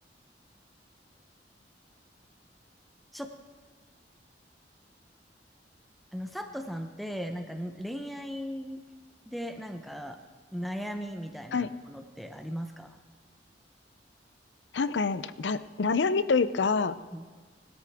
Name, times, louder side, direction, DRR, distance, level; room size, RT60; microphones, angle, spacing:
voice 1, 6.1-8.8 9.3-10.2 10.5-13.0 17.1-17.3, equal, ahead, 6 dB, 0.7 m, -37 dB
voice 2, 14.7-17.0, left 4 dB, 75° left, 15 dB, 0.5 m, -26 dB
20.0 x 13.0 x 3.5 m, 1.5 s
head